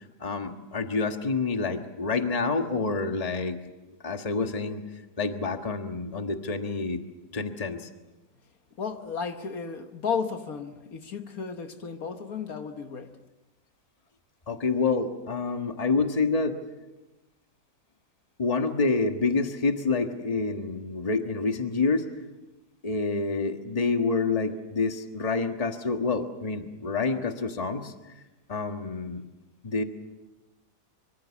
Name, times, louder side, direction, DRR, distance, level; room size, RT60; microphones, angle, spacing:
voice 1, 0.2-3.6 4.0-4.8 5.2-7.0 7.3-7.9 14.5-16.6 18.4-22.1 22.8-27.9 28.5-29.2 29.6-29.8, left 4 dB, 25° left, 1.5 m, -27 dB
voice 2, 8.8-13.2, left 5 dB, 65° left, 1.6 m, -33 dB
24.5 x 24.5 x 7.3 m
omnidirectional pair, 1.7 m